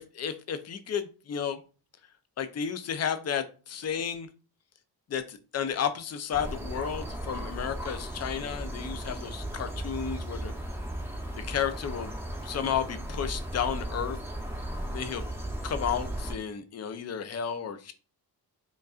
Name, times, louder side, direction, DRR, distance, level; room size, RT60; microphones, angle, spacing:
voice 1, 0.0-1.6 2.4-4.3 5.1-10.5 11.4-12.1 12.4-14.2 14.9-15.2 15.6-17.9, left 8 dB, 40° left, 10 dB, 0.5 m, -32 dB
sound 1, 6.3-16.3, right 1 dB, 5° right, 0.7 m, -36 dB
5.1 x 2.5 x 2.4 m, 0.36 s
wide cardioid pair, 115°, 41 cm